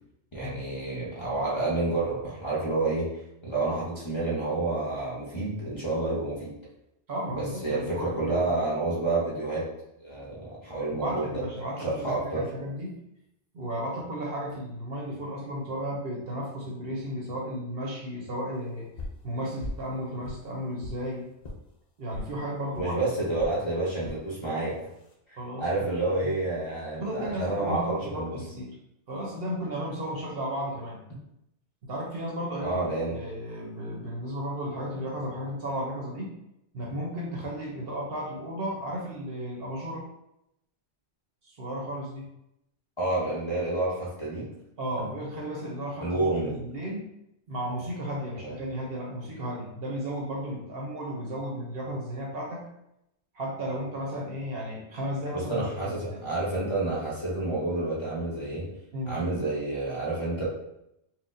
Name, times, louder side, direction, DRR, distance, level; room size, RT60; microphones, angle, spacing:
voice 1, 0.3-3.1 3.4-6.5 7.4-9.7 10.0-11.4 11.8-12.5 22.8-24.8 25.6-28.4 32.6-33.2 43.0-44.5 46.0-46.6 48.4-48.6 55.3-58.7 59.0-60.4, right 2 dB, 25° left, -7 dB, 0.9 m, -29 dB
voice 2, 7.1-8.6 10.9-12.9 13.5-18.9 19.2-21.3 22.0-23.0 25.3-25.9 27.0-28.8 29.1-31.0 31.8-36.3 36.7-40.0 41.4-42.3 44.8-47.0 47.5-52.6 53.3-56.2 58.9-59.2, equal, 60° right, -2 dB, 1.0 m, -34 dB
sound 1, 19.0-19.2 19.6-19.9 20.2-21.0 21.4-21.6 22.1-22.3 22.7-22.9 23.4-23.6 24.0-24.2 24.8-25.1, left 1 dB, 55° left, 0.5 m, -39 dB
4.3 x 2.1 x 2.5 m, 0.82 s
omnidirectional pair, 1.1 m